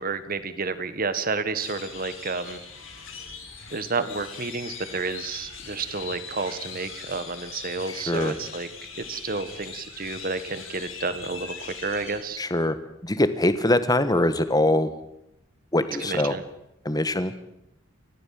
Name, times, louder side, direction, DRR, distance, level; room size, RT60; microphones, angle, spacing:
voice 1, 0.0-2.6 3.7-8.7 8.9-12.4 16.0-16.4, right 4 dB, 45° right, 12 dB, 1.6 m, -30 dB
sound 1, 1.6-12.2, left 5 dB, 80° left, 7.9 m, -40 dB
voice 2, 7.9-8.3 12.4-12.8 13.0-14.9 15.7-16.4 16.8-17.3, left 1 dB, 20° left, 11 dB, 1.5 m, -23 dB
30.0 x 14.0 x 7.7 m, 0.84 s
head